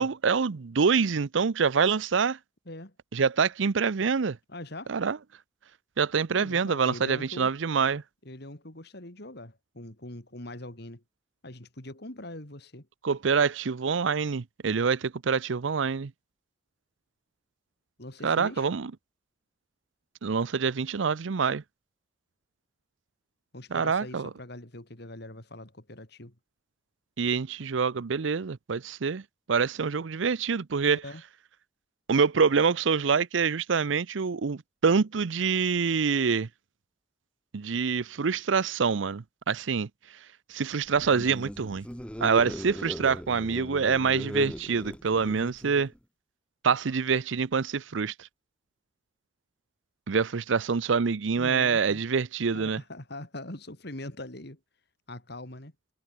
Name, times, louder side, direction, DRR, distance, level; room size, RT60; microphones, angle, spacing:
voice 1, 0.0-2.4 3.1-4.4 4.9-5.2 6.0-8.0 13.0-16.1 18.2-18.9 20.2-21.6 23.7-24.3 27.2-29.2 29.5-31.0 32.1-36.5 37.5-39.9 40.5-41.8 42.2-45.9 46.6-48.3 50.1-52.8, right 5 dB, 75° right, 0.6 m, -26 dB
voice 2, 4.5-4.9 6.3-7.5 8.2-11.0 11.4-12.9 18.0-18.7 23.5-26.3 30.9-31.2 51.4-52.0 52.5-54.6 55.1-55.7, left 1 dB, 60° left, 3.7 m, -42 dB
sound 1, 40.9-46.0, equal, 5° left, 1.9 m, -39 dB
head